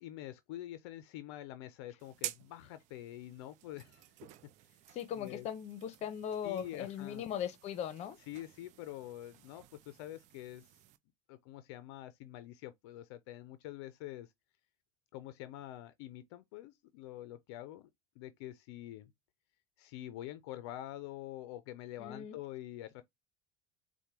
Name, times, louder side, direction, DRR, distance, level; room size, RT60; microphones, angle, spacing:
voice 1, 0.0-4.0 4.7-4.8 5.1-5.5 6.4-7.2 8.3-10.8 11.3-14.3 15.1-17.9 18.2-19.1 19.8-23.0, left 14 dB, 80° left, 0.4 m, -46 dB
sound 1, 2.0-11.0, right 14 dB, 60° right, 0.4 m, -51 dB
voice 2, 4.9-8.2 22.0-22.3, left 9 dB, 50° left, 0.8 m, -39 dB
4.5 x 2.2 x 2.8 m
supercardioid pair, 100°, 14 cm